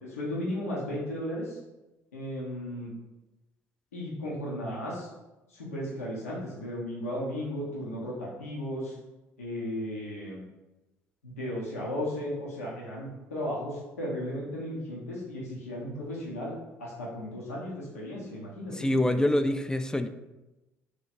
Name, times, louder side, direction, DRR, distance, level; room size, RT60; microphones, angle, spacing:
voice 1, 0.0-1.6 2.1-2.9 3.9-5.1 5.5-9.0 9.4-10.4 11.2-16.5 16.8-19.3, equal, 85° left, -5 dB, 0.8 m, -35 dB
voice 2, 18.8-20.1, left 1 dB, 10° left, 9 dB, 0.3 m, -25 dB
3.1 x 3.1 x 4.1 m, 1.0 s
figure-of-eight pair, 55°, 8 cm